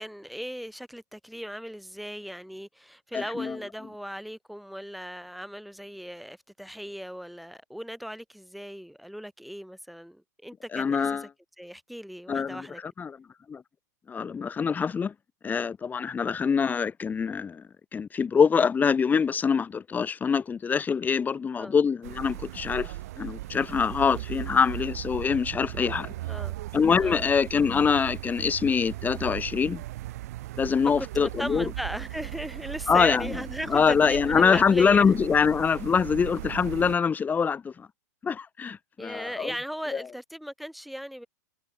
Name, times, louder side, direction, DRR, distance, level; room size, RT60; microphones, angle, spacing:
voice 1, 0.0-11.3 11.6-12.8 21.6-21.7 26.3-26.6 27.0-27.3 31.0-35.1 39.0-41.3, equal, ahead, 5.7 m, -37 dB
voice 2, 3.1-3.6 10.7-11.3 12.3-13.2 13.5-13.6 14.1-15.1 15.4-17.6 17.9-26.1 26.7-29.8 30.6-31.7 32.9-33.3 33.7-37.9 38.2-39.5 39.9-40.1, left 6 dB, 20° left, 2.3 m, -24 dB
sound 1, 22.0-37.0, right 16 dB, 60° right, 4.0 m, -38 dB
hypercardioid pair, 105°, 9 cm